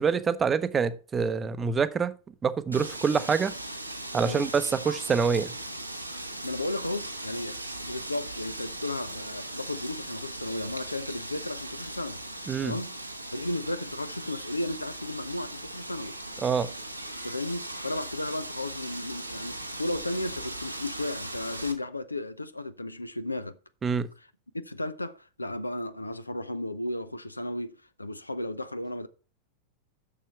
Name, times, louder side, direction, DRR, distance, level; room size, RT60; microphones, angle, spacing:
voice 1, 0.0-2.1 2.4-3.5 4.1-5.5 12.5-12.7 16.4-16.7 23.8-24.1, right 6 dB, 20° right, 0.7 m, -26 dB
Wind, 2.7-21.7, right 1 dB, 90° right, 1.1 m, -39 dB
voice 2, 6.4-12.2 12.6-12.9 13.3-16.2 17.2-23.6 24.5-29.1, left 1 dB, 85° left, 0.6 m, -34 dB
7.3 x 6.6 x 5.8 m
figure-of-eight pair, 90°, 0 cm